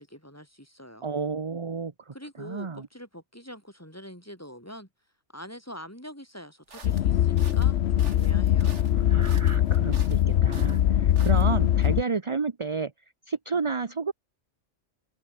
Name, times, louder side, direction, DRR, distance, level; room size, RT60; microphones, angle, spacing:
voice 1, 0.0-1.1 2.1-4.9 5.3-8.8, equal, 10° left, 8.1 m, -44 dB
voice 2, 1.0-2.9 8.9-12.9 13.3-14.1, right 4 dB, 25° right, 0.9 m, -31 dB
sound 1, 6.7-11.9, right 4 dB, 70° right, 2.7 m, -47 dB
sound 2, 6.8-12.0, left 11 dB, 65° left, 0.9 m, -22 dB
omnidirectional pair, 1.3 m